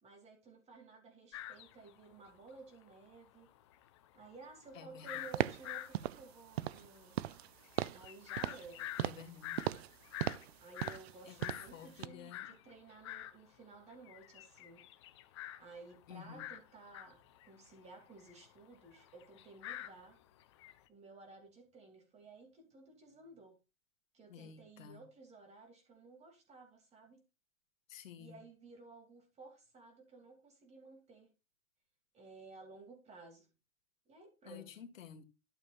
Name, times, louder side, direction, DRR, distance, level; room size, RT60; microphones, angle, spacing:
voice 1, 0.0-3.5 4.1-7.2 7.9-8.9 10.6-14.9 15.6-20.2 20.9-23.6 24.1-27.2 28.2-31.3 32.1-33.5 34.1-34.8, right 3 dB, 15° right, 2.7 m, -55 dB
sound 1, 1.3-2.5 2.8-2.9 3.1-13.4 13.7-20.8, left 13 dB, 20° left, 0.4 m, -48 dB
voice 2, 4.8-5.1 9.0-9.7 11.3-12.5 16.1-16.4 24.3-25.0 27.9-28.4 34.5-35.2, left 8 dB, 65° left, 1.8 m, -52 dB
sound 2, 5.3-5.7 5.9-6.2 6.6-6.9 7.1-7.5 7.8-8.1 8.4-8.7 9.0-9.3 9.6-9.9 10.2-10.5 10.8-11.1 11.4-11.7 12.0-12.1, right 13 dB, 50° right, 0.5 m, -37 dB
12.5 x 7.1 x 2.5 m
hypercardioid pair, 155°, 41 cm